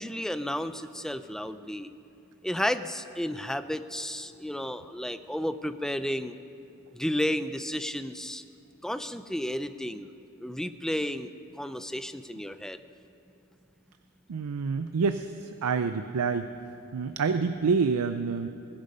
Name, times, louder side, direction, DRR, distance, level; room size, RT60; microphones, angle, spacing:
voice 1, 0.0-1.9 2.4-6.4 6.9-8.4 8.8-10.1 10.4-12.8, equal, ahead, 11 dB, 0.4 m, -32 dB
voice 2, 14.3-16.5 16.9-18.5, right 5 dB, 80° right, 10 dB, 0.5 m, -27 dB
20.0 x 10.5 x 5.5 m, 2.7 s
head